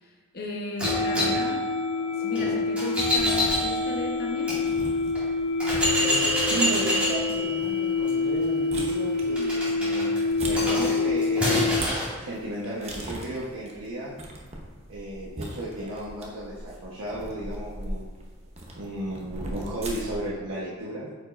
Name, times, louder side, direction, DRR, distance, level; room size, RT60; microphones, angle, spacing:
voice 1, 0.0-1.6 2.2-4.5, equal, 45° left, -2 dB, 0.9 m, -35 dB
sound 1, 0.8-11.8, left 4 dB, 75° left, 0.3 m, -27 dB
sound 2, 0.8-4.6 5.2-5.3 5.6-12.1, equal, 5° right, 2.0 m, -28 dB
sound 3, 3.2-20.3, right 1 dB, 30° right, 0.8 m, -41 dB
voice 2, 6.0-10.2 10.4-14.1 14.9-18.0 18.7-21.1, right 1 dB, 70° right, -7 dB, 1.0 m, -34 dB
8.7 x 5.3 x 2.5 m, 1.3 s
head